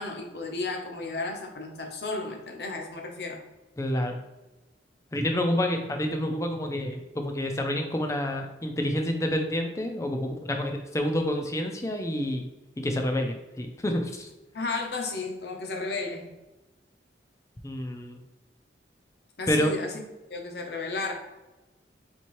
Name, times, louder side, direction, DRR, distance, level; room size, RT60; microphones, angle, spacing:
voice 1, 0.0-3.4 14.5-16.3 19.4-19.9 20.3-21.1, left 3 dB, 60° left, 2 dB, 0.7 m, -33 dB
voice 2, 3.8-4.2 5.1-12.4 12.8-14.3 17.6-18.2 19.5-19.7, left 1 dB, 15° left, 4 dB, 0.5 m, -28 dB
4.4 x 3.5 x 3.1 m, 1.1 s
head